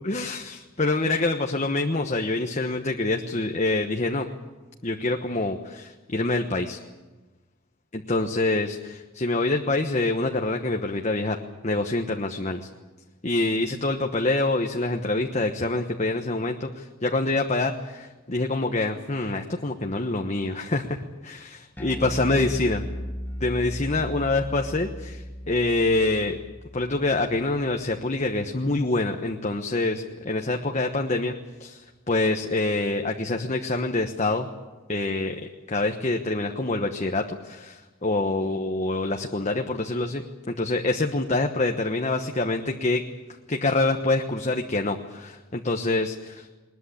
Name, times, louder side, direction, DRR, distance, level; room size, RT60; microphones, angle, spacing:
voice 1, 0.0-4.3 4.8-6.8 7.9-11.4 11.6-12.7 13.2-22.8 23.4-26.4 26.7-31.3 31.6-34.5 34.9-43.0 43.5-46.6, left 2 dB, 35° left, 3 dB, 1.2 m, -26 dB
Bass guitar, 21.8-28.2, equal, 10° left, 1.2 m, -37 dB
21.0 x 21.0 x 8.5 m, 1.2 s
head